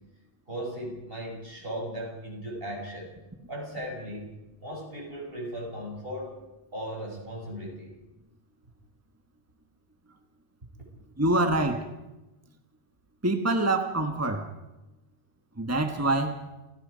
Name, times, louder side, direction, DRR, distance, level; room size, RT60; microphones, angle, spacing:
voice 1, 0.5-3.1 3.5-6.3 6.7-7.9, equal, 65° right, -1 dB, 7.4 m, -37 dB
voice 2, 11.2-11.9 13.2-14.5 15.6-16.4, right 2 dB, 15° right, 6 dB, 1.4 m, -25 dB
29.5 x 17.5 x 5.1 m, 1.0 s
omnidirectional pair, 1.0 m